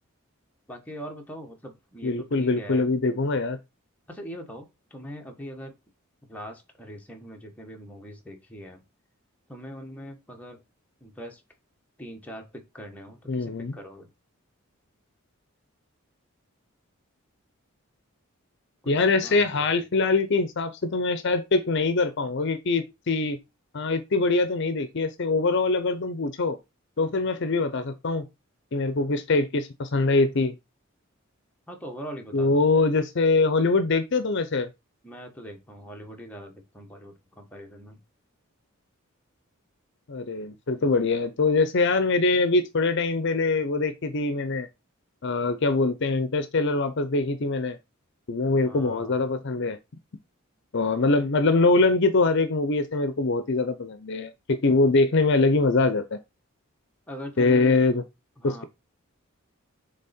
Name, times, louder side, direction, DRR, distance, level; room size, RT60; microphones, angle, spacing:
voice 1, 0.7-2.9 4.1-5.8 6.3-8.8 9.5-10.6 11.0-11.4 12.0-14.1 18.8-19.9 31.7-32.6 35.0-38.0 48.7-49.2 57.1-57.9 58.4-58.6, equal, 5° left, 1.4 m, -41 dB
voice 2, 2.0-3.6 13.3-13.7 18.9-23.4 23.7-26.6 27.0-28.3 28.7-30.6 32.3-34.7 40.1-44.7 45.2-47.8 48.3-49.8 50.7-56.2 57.4-58.0 58.4-58.6, left 3 dB, 55° left, 0.6 m, -23 dB
7.3 x 3.4 x 4.3 m
head